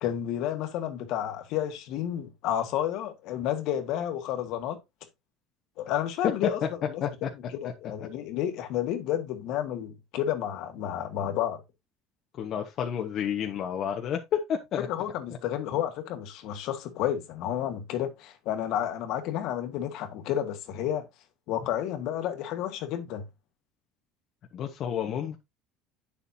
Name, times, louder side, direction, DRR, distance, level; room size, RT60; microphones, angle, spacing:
voice 1, 0.0-4.8 5.8-6.6 6.9-7.0 7.5-11.6 14.9-21.1 21.5-23.2, left 10 dB, 65° left, 1.7 m, -31 dB
voice 2, 12.4-14.9 24.5-25.4, left 9 dB, 45° left, 1.1 m, -30 dB
9.1 x 7.1 x 2.7 m
cardioid pair, 135°, 0 cm